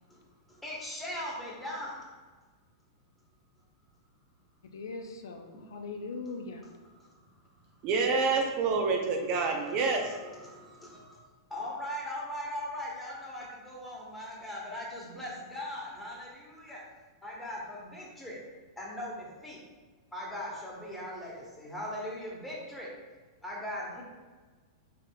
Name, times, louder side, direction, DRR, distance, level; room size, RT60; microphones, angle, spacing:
voice 1, 0.6-2.0 7.0-7.1 9.6-11.2 11.5-16.8 17.2-18.4 18.8-19.6 20.1-22.9 23.4-24.0, left 1 dB, 5° left, -5 dB, 1.2 m, -40 dB
voice 2, 4.6-6.7, left 3 dB, 85° left, 5 dB, 0.5 m, -40 dB
voice 3, 7.8-10.1, right 4 dB, 45° right, 2 dB, 0.6 m, -27 dB
4.9 x 3.5 x 2.3 m, 1.3 s
hypercardioid pair, 125°, 2 cm